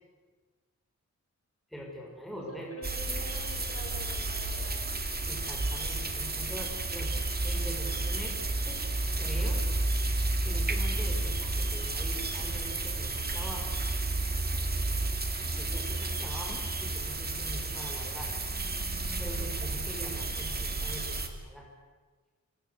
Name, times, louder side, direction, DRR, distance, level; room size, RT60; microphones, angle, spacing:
voice 1, 1.7-2.7 5.3-7.1 7.4-8.9 9.2-9.7 10.4-13.8 15.6-18.3 19.2-21.7, equal, ahead, -1 dB, 5.7 m, -43 dB
voice 2, 2.4-5.0, left 2 dB, 50° left, 1 dB, 7.5 m, -46 dB
sound 1, 2.8-21.3, right 2 dB, 30° right, 2.8 m, -31 dB
27.0 x 25.5 x 8.3 m, 1.4 s
wide cardioid pair, 145°, 30 cm